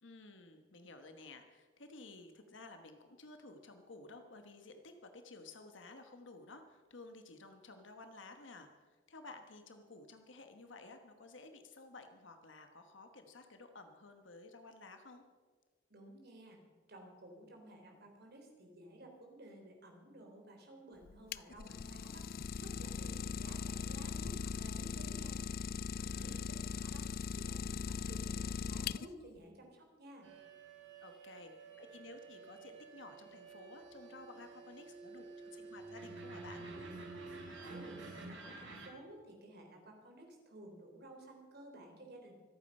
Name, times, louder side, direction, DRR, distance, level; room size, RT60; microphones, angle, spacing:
voice 1, 0.0-8.7 9.1-15.2 23.0-23.2 26.1-26.5 31.0-31.5 31.8-36.6, left 3 dB, 75° left, 6 dB, 1.3 m, -54 dB
voice 2, 15.9-16.6 16.9-22.3 22.6-25.4 26.0-27.1 27.3-30.3 37.7-42.3, right 1 dB, 55° right, 2 dB, 3.7 m, -54 dB
Idling, 21.0-29.4, left 6 dB, 50° left, 0.4 m, -40 dB
sound 1, 30.2-38.9, right 3 dB, 70° right, 3.3 m, -50 dB
25.0 x 8.8 x 5.4 m, 1.4 s
head